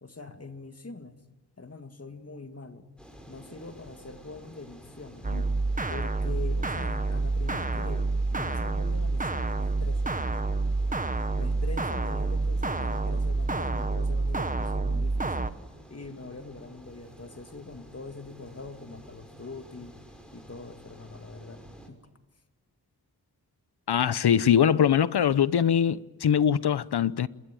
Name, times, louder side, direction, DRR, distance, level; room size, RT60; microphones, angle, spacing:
voice 1, 0.0-1.2 1.6-2.9 3.3-5.3 5.9-10.3 11.4-15.6 15.9-20.0 20.3-21.6 21.9-22.0, left 3 dB, 40° left, 2.3 m, -43 dB
sound 1, 3.0-21.9, equal, ahead, 6.2 m, -51 dB
sound 2, 5.2-15.5, right 3 dB, 20° right, 1.2 m, -28 dB
voice 2, 23.9-27.3, left 8 dB, 80° left, 0.9 m, -22 dB
27.0 x 22.0 x 9.2 m
wide cardioid pair, 75°, 39 cm